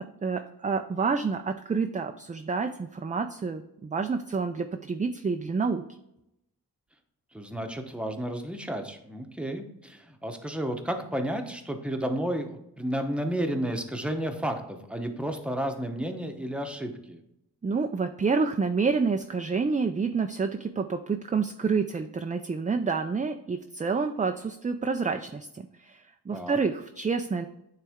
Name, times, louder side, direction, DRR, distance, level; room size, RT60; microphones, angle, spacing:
voice 1, 0.0-5.8 17.6-27.5, right 4 dB, 20° right, 6 dB, 0.4 m, -28 dB
voice 2, 7.3-17.2 26.3-26.6, right 1 dB, 5° right, 5 dB, 0.9 m, -32 dB
9.0 x 3.3 x 3.6 m, 0.83 s
cardioid pair, 55°, 41 cm